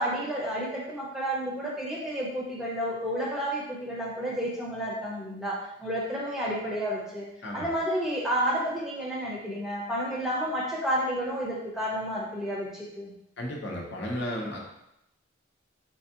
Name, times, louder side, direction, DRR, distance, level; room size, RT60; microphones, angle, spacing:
voice 1, 0.0-7.2 7.5-13.1, equal, ahead, -5 dB, 0.7 m, -31 dB
voice 2, 13.4-14.6, left 1 dB, 55° left, -1 dB, 0.8 m, -33 dB
4.6 x 3.4 x 2.9 m, 0.83 s
head